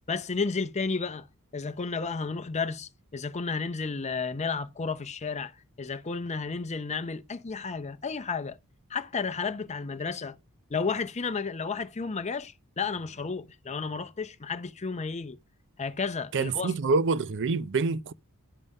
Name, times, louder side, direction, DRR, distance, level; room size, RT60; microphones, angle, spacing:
voice 1, 0.1-1.3 1.5-8.6 8.9-10.4 10.7-15.4 15.8-16.7, left 4 dB, 30° left, 0.6 m, -32 dB
voice 2, 16.3-18.1, right 4 dB, 60° right, 0.6 m, -26 dB
11.0 x 5.4 x 5.4 m
head